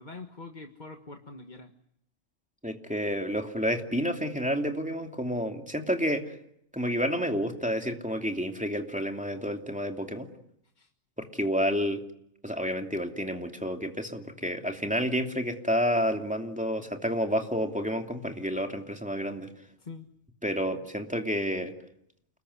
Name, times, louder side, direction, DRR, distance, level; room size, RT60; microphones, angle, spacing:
voice 1, 0.0-1.7 10.8-10.9 19.8-20.1, left 3 dB, 35° left, 4 dB, 1.7 m, -44 dB
voice 2, 2.6-6.4 6.7-10.3 11.2-12.0 12.4-19.5 20.4-21.7, equal, 5° right, 3 dB, 2.7 m, -30 dB
29.5 x 20.5 x 9.7 m, 0.74 s
omnidirectional pair, 1.4 m